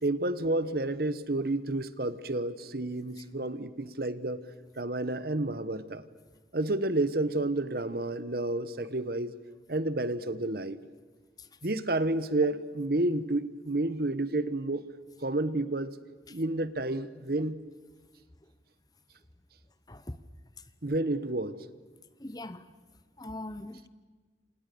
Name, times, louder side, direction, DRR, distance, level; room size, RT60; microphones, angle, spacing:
voice 1, 0.0-4.4 4.8-6.0 6.5-9.4 9.7-10.8 11.6-14.8 15.2-16.0 16.3-17.6 20.8-21.6, right 2 dB, 55° right, 1.2 m, -30 dB
voice 2, 22.2-22.6 23.2-23.9, left 1 dB, 20° left, 1.0 m, -40 dB
29.5 x 27.0 x 6.9 m
head